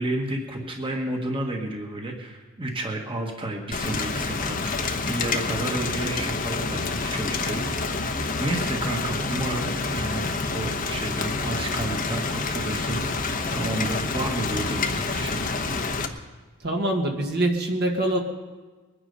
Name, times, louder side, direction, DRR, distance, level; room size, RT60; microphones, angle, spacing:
voice 1, 0.0-4.6 5.0-13.0 13.5-15.4, right 2 dB, 25° right, 2 dB, 1.5 m, -31 dB
Rain, 3.7-16.1, left 3 dB, 40° left, 1.0 m, -28 dB
voice 2, 16.6-18.2, right 1 dB, 50° right, 1 dB, 1.7 m, -24 dB
21.5 x 10.0 x 5.5 m, 1.3 s
head